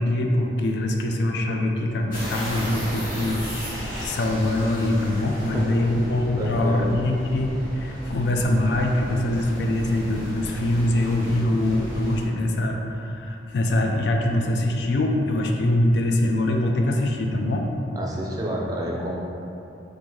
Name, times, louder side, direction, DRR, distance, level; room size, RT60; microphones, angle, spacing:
voice 1, 0.0-17.7, left 1 dB, 65° left, 2 dB, 0.3 m, -23 dB
sound 1, 2.1-12.3, equal, 20° left, 1.4 m, -35 dB
voice 2, 6.3-6.9 17.9-19.2, equal, 20° right, -3 dB, 0.4 m, -29 dB
3.7 x 2.6 x 3.0 m, 2.8 s
head